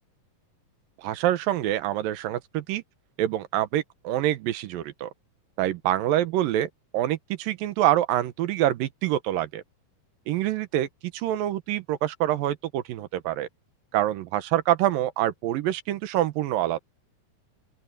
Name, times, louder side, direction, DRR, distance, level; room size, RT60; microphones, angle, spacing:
voice 1, 1.0-2.8 3.2-5.1 5.6-6.7 6.9-9.6 10.3-13.5 13.9-16.8, right 13 dB, 90° right, 2.8 m, -26 dB
open air
omnidirectional pair, 3.9 m